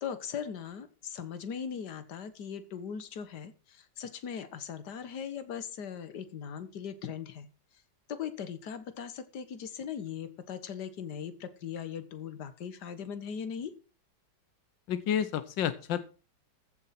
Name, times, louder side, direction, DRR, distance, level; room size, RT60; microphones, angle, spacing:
voice 1, 0.0-7.5 8.1-13.7, left 7 dB, 65° left, 12 dB, 1.9 m, -39 dB
voice 2, 14.9-16.0, left 9 dB, 90° left, 13 dB, 1.6 m, -30 dB
15.0 x 7.1 x 5.8 m, 0.35 s
omnidirectional pair, 2.0 m